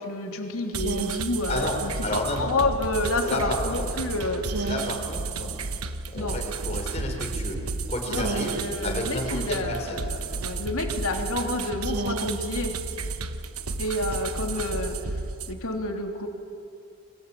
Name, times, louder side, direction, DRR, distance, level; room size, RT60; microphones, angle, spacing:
voice 1, 0.0-4.7 6.1-6.4 8.1-12.7 13.8-15.2 15.5-16.3, left 2 dB, 75° left, 3 dB, 3.3 m, -29 dB
sound 1, 0.7-15.5, right 3 dB, 85° right, 1.2 m, -32 dB
voice 2, 2.0-2.5 3.3-3.8 4.6-5.5 6.1-7.6 7.9-8.6 8.8-10.0, left 1 dB, 30° left, 1 dB, 4.6 m, -31 dB
28.0 x 24.5 x 8.6 m, 2.6 s
head